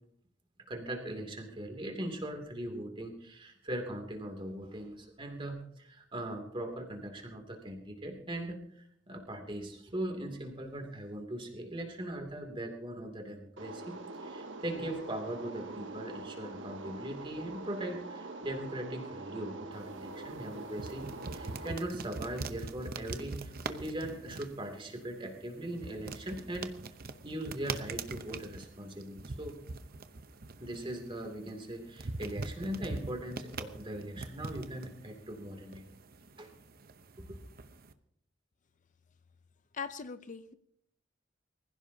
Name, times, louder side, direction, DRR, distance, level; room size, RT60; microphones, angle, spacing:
voice 1, 0.7-21.0 21.3-26.7 27.2-29.6 30.6-35.8 36.4-36.5 37.2-37.4, right 1 dB, 30° right, 2.7 m, -40 dB
sound 1, 13.6-21.7, right 2 dB, 80° right, 1.3 m, -44 dB
sound 2, 19.7-37.9, right 3 dB, 50° right, 0.9 m, -44 dB
voice 2, 39.7-40.5, left 5 dB, 40° left, 0.6 m, -40 dB
24.5 x 15.5 x 2.8 m
head